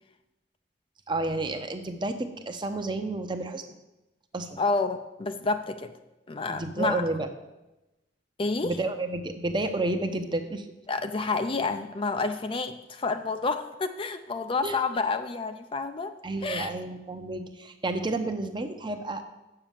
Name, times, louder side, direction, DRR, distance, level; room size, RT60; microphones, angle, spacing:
voice 1, 1.1-3.6 4.3-4.6 6.5-7.3 8.6-10.6 14.6-14.8 16.2-19.2, right 2 dB, 25° right, 7 dB, 0.8 m, -31 dB
voice 2, 4.6-5.9 6.3-7.0 8.4-8.8 10.9-16.1 16.4-16.7, left 3 dB, 30° left, 8 dB, 0.5 m, -29 dB
8.2 x 6.8 x 7.4 m, 1.0 s
head